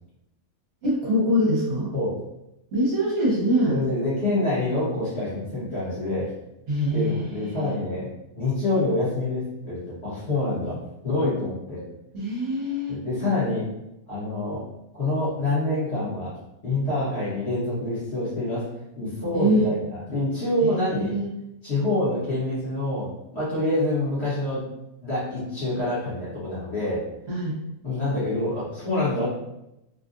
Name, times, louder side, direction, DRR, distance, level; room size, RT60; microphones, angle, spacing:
voice 1, 0.8-1.9 2.7-3.8 6.7-7.7 12.1-13.0 19.3-19.7 20.6-21.3 27.3-27.6, equal, 60° right, -6 dB, 1.4 m, -24 dB
voice 2, 3.7-6.3 6.9-8.1 8.4-10.8 11.0-11.8 12.9-13.7 14.1-14.6 14.9-16.3 16.6-18.6 18.9-21.1 21.6-23.1 23.3-24.6 25.0-27.0 27.8-29.3, left 2 dB, 40° left, -10 dB, 1.5 m, -26 dB
3.9 x 2.4 x 2.5 m, 0.88 s
omnidirectional pair, 1.7 m